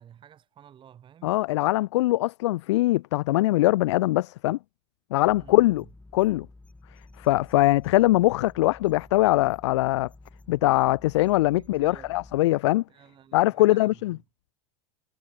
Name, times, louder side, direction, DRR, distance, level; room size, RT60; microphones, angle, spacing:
voice 1, 0.0-1.4 5.4-5.9 11.6-12.2 12.9-14.2, right 9 dB, 35° right, 5.1 m, -52 dB
voice 2, 1.2-4.6 5.1-5.8 6.1-6.5 7.2-10.1 10.5-12.8 13.3-14.2, left 18 dB, 70° left, 0.4 m, -22 dB
sound 1, 5.3-12.4, left 2 dB, 10° left, 4.1 m, -51 dB
hypercardioid pair, 100°, 15 cm